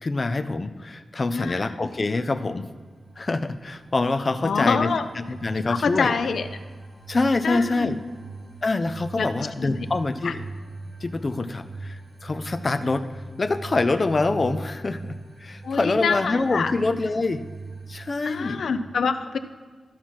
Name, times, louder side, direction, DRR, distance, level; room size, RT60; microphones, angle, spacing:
voice 1, 0.0-2.7 3.2-6.1 7.1-8.0 8.6-10.4 11.0-13.1 13.4-15.1 15.4-17.4 17.9-18.6, left 3 dB, 35° left, 10 dB, 0.5 m, -25 dB
voice 2, 1.3-1.7 4.4-5.1 5.5-6.5 7.4-8.0 9.2-9.7 10.2-10.3 15.6-16.7 18.3-19.4, left 5 dB, 80° left, 10 dB, 0.6 m, -26 dB
sound 1, 2.5-18.5, right 3 dB, 50° right, 2.8 m, -41 dB
13.5 x 5.8 x 4.7 m, 1.5 s
wide cardioid pair, 115°, 0 cm